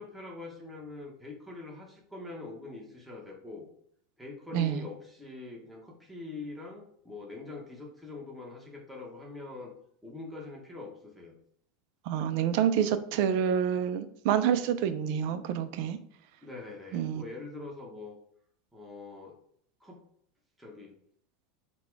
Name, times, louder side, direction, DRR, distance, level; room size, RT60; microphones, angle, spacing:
voice 1, 0.0-3.7 4.2-9.7 10.0-11.4 16.4-18.2 18.7-19.4 19.8-20.0 20.6-20.9, left 3 dB, ahead, -3 dB, 0.9 m, -43 dB
voice 2, 4.5-4.8 12.1-16.0 16.9-17.2, right 9 dB, 60° right, 11 dB, 0.4 m, -28 dB
4.0 x 2.2 x 4.5 m, 0.66 s
supercardioid pair, 130°, 0 cm